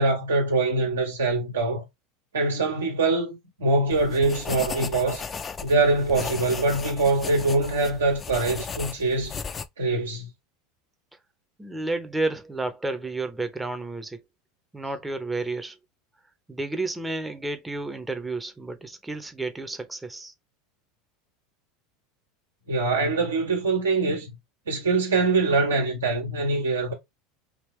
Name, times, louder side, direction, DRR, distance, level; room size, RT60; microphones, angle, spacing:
voice 1, 0.0-1.8 2.3-5.2 5.6-9.4 9.8-10.3 22.7-24.3 24.7-26.9, right 3 dB, 90° right, 1.3 m, -23 dB
sound 1, 3.9-9.7, left 5 dB, 30° left, 0.5 m, -36 dB
voice 2, 11.6-14.2 14.7-15.8 16.5-20.3, right 2 dB, 10° right, 0.7 m, -31 dB
3.5 x 2.8 x 3.1 m
hypercardioid pair, 90°, 0 cm